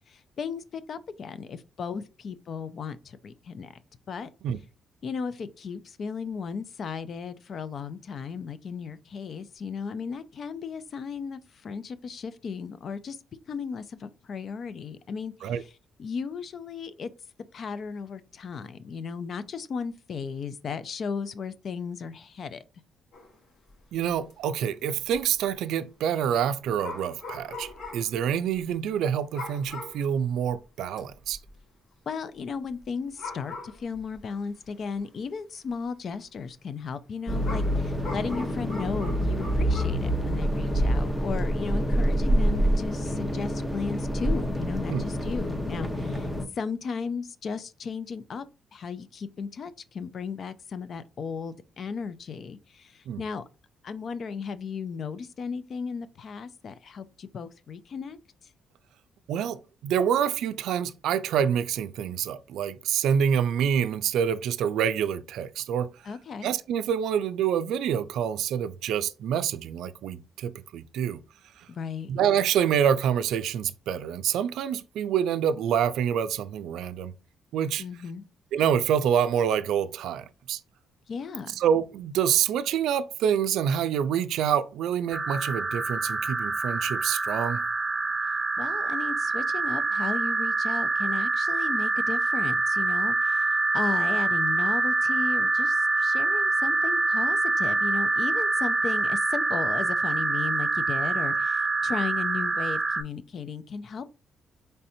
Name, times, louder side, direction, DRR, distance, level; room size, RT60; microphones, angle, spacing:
voice 1, 0.1-3.7 4.1-4.3 5.0-13.2 13.5-15.7 16.0-17.1 17.5-22.6 32.1-46.3 46.5-48.4 48.7-53.4 53.8-58.2 66.0-66.5 71.7-72.1 77.8-78.2 81.1-81.6 88.6-93.5 93.7-104.0, left 5 dB, 55° left, 0.4 m, -35 dB
sound 1, 23.1-23.4 23.7-23.8 24.1-24.3 25.1-25.4 26.8-28.2 28.5-28.6 29.3-30.1 30.5-30.6 31.0-31.5 32.8-32.9 33.2-34.2 35.0-35.1 37.4-40.0, left 2 dB, 70° left, 1.5 m, -40 dB
voice 2, 23.9-31.4 44.9-45.0 53.1-53.2 59.3-65.9 66.4-71.2 71.6-71.7 72.1-77.1 77.5-77.8 78.5-80.6 81.6-87.6, right 8 dB, 80° right, 0.3 m, -27 dB
sound 2, 37.3-46.4, equal, 10° left, 0.7 m, -26 dB
sound 3, 85.1-103.0, right 3 dB, 40° right, 0.7 m, -26 dB
4.2 x 3.3 x 2.6 m
cardioid pair, 90°, 0 cm